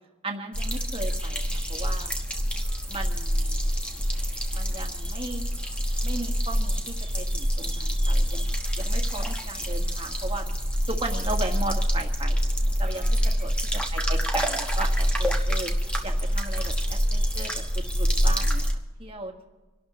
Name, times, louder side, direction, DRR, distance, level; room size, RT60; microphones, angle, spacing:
voice 1, 0.2-1.4 1.7-2.1 2.9-3.7 4.5-5.4 6.0-10.5 10.9-12.5 12.8-13.5 13.9-15.7 16.0-18.7 19.0-19.5, right 2 dB, 25° right, 2 dB, 1.6 m, -36 dB
sound 1, 0.5-18.7, equal, 5° left, 1.2 m, -26 dB
26.0 x 12.0 x 3.1 m, 1.2 s
head